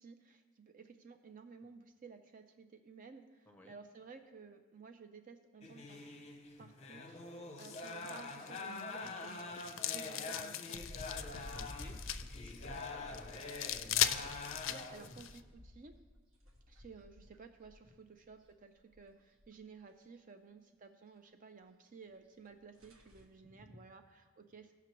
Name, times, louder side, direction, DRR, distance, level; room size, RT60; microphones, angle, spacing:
voice 1, 0.0-6.1 6.6-11.0 14.3-15.9 16.7-24.7, right 5 dB, 40° right, 7 dB, 0.5 m, -55 dB
sound 1, 5.6-15.1, left 3 dB, 30° left, 0.8 m, -46 dB
sound 2, 7.6-15.4, left 11 dB, 65° left, 0.4 m, -40 dB
sound 3, 10.7-17.9 18.2-19.1 19.4-19.5 19.9-20.0 22.1-22.2 22.5-22.6 22.7-23.3, left 1 dB, 75° right, 1.5 m, -52 dB
voice 2, 11.5-13.5 23.5-23.8, left 1 dB, 10° left, 1 dB, 0.9 m, -58 dB
17.0 x 5.9 x 3.0 m, 1.4 s
head